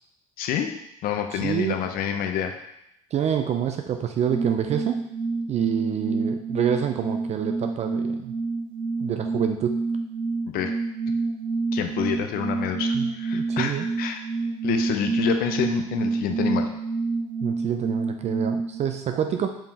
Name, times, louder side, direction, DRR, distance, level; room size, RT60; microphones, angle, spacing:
voice 1, 0.4-0.7 1.0-2.5 10.5-10.7 11.7-14.2 14.6-16.7, left 8 dB, 60° left, 6 dB, 0.6 m, -28 dB
voice 2, 1.3-1.8 3.1-5.0 5.5-8.3 9.0-9.8 12.9-13.9 17.4-19.6, right 9 dB, 40° right, 5 dB, 0.4 m, -27 dB
sound 1, 4.3-18.8, right 3 dB, 85° right, 1.4 m, -28 dB
5.0 x 3.6 x 2.8 m, 0.80 s
hypercardioid pair, 65°, 17 cm